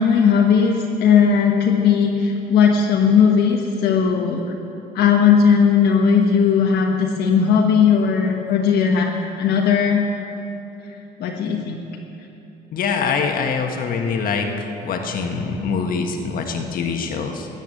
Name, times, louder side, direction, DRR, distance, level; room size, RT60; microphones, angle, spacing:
voice 1, 0.0-4.4 4.9-9.1 9.4-10.0 11.2-11.8, left 6 dB, 75° left, 0 dB, 1.2 m, -17 dB
voice 2, 12.7-14.5 14.8-17.5, left 5 dB, 60° left, 3 dB, 1.6 m, -24 dB
13.5 x 9.3 x 7.7 m, 2.9 s
cardioid pair, 110°, 17 cm